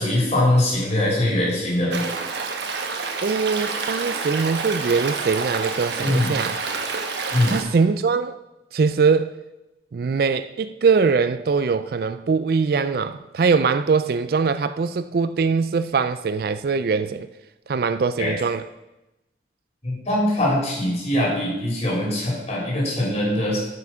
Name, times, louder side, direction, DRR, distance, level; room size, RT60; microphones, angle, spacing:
voice 1, 0.0-2.0 6.0-6.3 7.3-7.6 18.2-18.3 19.8-23.6, left 1 dB, 35° left, 3.5 m, -22 dB
Stream, 1.9-7.6, right 4 dB, 70° right, 1.2 m, -28 dB
voice 2, 3.2-6.6 7.5-8.4 8.7-9.3 9.9-17.3 17.7-18.6, right 5 dB, 55° right, 0.4 m, -22 dB
9.3 x 6.0 x 6.1 m
head